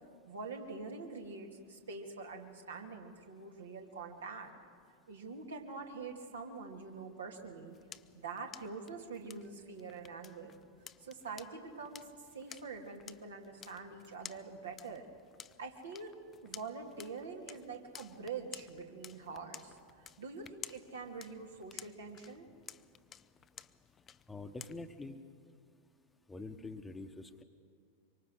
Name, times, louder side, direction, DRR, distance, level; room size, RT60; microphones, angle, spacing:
voice 1, 0.3-4.5 5.1-7.8 8.1-10.5 11.0-12.1 12.3-15.1 15.6-16.2 16.4-22.5, right 4 dB, 70° right, 2 dB, 2.5 m, -45 dB
sound 1, 7.4-25.1, left 8 dB, 25° left, 0.5 m, -54 dB
voice 2, 24.3-25.2 26.3-27.4, left 3 dB, 10° left, 8 dB, 1.2 m, -45 dB
25.0 x 24.0 x 6.5 m, 2.1 s
figure-of-eight pair, 90°, 0 cm